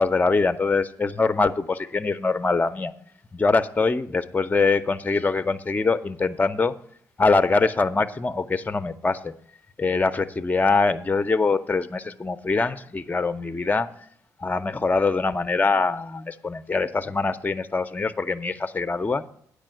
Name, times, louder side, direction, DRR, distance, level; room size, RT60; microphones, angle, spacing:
voice 1, 0.0-2.9 3.3-6.7 7.2-9.3 9.8-13.9 14.4-19.2, left 3 dB, 20° left, 10 dB, 0.6 m, -23 dB
8.9 x 5.0 x 7.6 m, 0.64 s
supercardioid pair, 50°, 8 cm